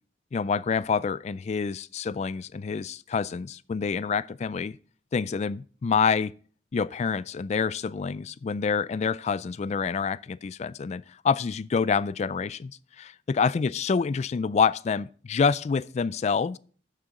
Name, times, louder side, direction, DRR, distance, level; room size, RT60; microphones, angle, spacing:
voice 1, 0.3-4.8 5.1-6.3 6.7-16.6, left 5 dB, 40° left, 0.3 m, -27 dB
12.0 x 6.7 x 3.7 m
head